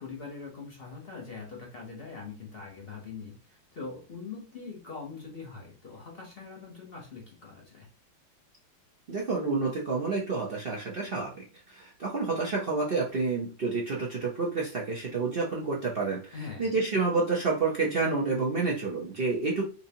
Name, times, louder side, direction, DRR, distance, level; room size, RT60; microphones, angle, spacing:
voice 1, 0.0-7.9 16.3-16.8, left 4 dB, 45° left, 0.8 m, -42 dB
voice 2, 9.1-19.6, right 4 dB, 65° right, 0.5 m, -29 dB
4.5 x 2.7 x 2.7 m
omnidirectional pair, 2.1 m